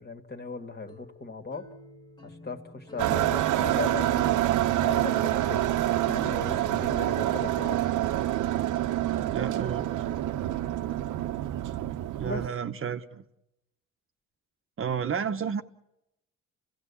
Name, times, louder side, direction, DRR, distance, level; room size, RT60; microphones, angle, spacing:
voice 1, 0.0-1.7 2.2-4.4 4.8-5.7 6.1-7.8 12.2-12.4, left 4 dB, 35° left, 2.1 m, -37 dB
sound 1, 0.9-5.8, left 1 dB, 15° left, 2.0 m, -51 dB
sound 2, 3.0-12.5, right 13 dB, 80° right, 0.8 m, -27 dB
voice 2, 9.3-9.9 12.2-13.2 14.8-15.6, right 7 dB, 45° right, 0.9 m, -31 dB
29.0 x 16.5 x 8.5 m
cardioid pair, 90°, 30 cm